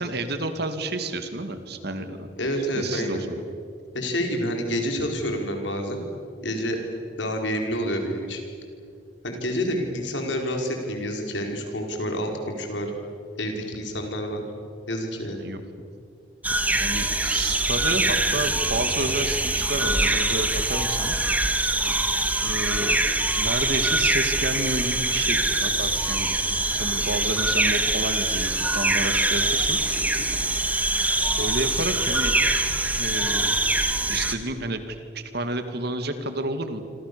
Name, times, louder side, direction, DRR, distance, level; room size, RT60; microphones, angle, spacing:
voice 1, 0.0-2.3 2.8-3.4 15.4-15.6 16.7-21.1 22.4-23.0 23.4-26.3 26.7-30.1 31.4-32.4 32.9-33.6 34.1-36.8, right 2 dB, 60° right, 8 dB, 2.4 m, -30 dB
voice 2, 2.4-3.3 3.9-6.0 6.4-6.8 7.2-8.4 9.2-12.9 13.4-14.4 14.9-15.5 29.9-30.3, equal, 85° left, 3 dB, 4.9 m, -28 dB
sound 1, 16.4-34.3, right 2 dB, 10° right, 1.6 m, -24 dB
27.0 x 26.5 x 7.0 m, 2.3 s
head